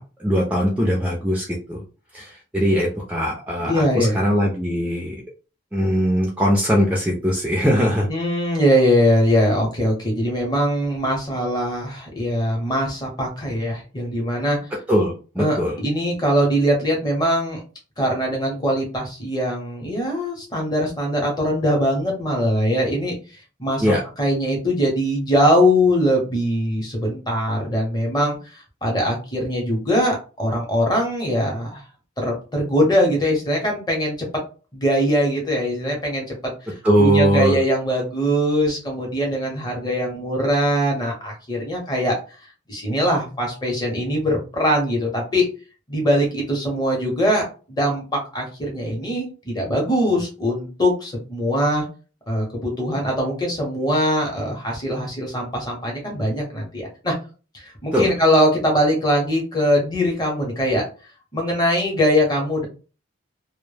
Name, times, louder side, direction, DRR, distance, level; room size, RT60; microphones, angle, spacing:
voice 1, 0.0-1.8 2.1-5.1 5.7-8.1 14.9-15.8 23.8-24.0 36.8-37.6 57.9-58.1, equal, 5° right, -2 dB, 0.4 m, -20 dB
voice 2, 3.7-4.2 8.1-14.6 15.4-17.6 18.0-23.1 23.6-23.8 24.2-31.8 32.2-34.4 34.7-36.5 37.0-42.4 42.7-45.5 45.9-51.8 52.3-57.1 57.5-60.8 61.3-62.6, equal, 20° left, 0 dB, 0.7 m, -21 dB
2.1 x 2.0 x 3.2 m, 0.35 s
head